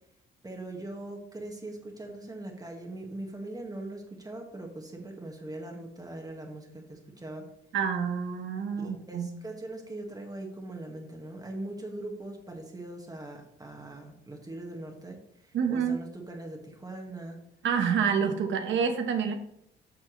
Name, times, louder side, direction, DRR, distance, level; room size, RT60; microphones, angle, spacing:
voice 1, 0.4-7.5 8.8-17.4, right 2 dB, 20° right, 1 dB, 1.7 m, -41 dB
voice 2, 7.7-9.3 15.5-16.0 17.6-19.3, right 6 dB, 70° right, 5 dB, 1.3 m, -27 dB
8.9 x 6.2 x 3.2 m, 0.77 s
cardioid pair, 90°, 20 cm